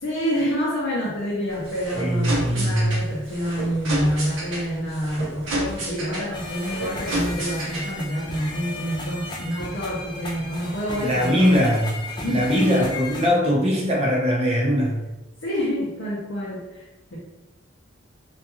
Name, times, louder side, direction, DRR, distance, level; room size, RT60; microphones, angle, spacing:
voice 1, 0.0-11.7 12.2-12.8 15.4-17.2, equal, 70° left, -6 dB, 0.6 m, -27 dB
sound 1, 1.5-8.1, right 1 dB, 75° right, 0.7 m, -31 dB
voice 2, 1.9-2.9 11.0-11.9 12.3-15.0, equal, 30° right, -3 dB, 0.6 m, -21 dB
sound 2, 6.3-13.3, left 2 dB, 20° left, 0.3 m, -35 dB
2.4 x 2.3 x 2.9 m, 1.0 s
head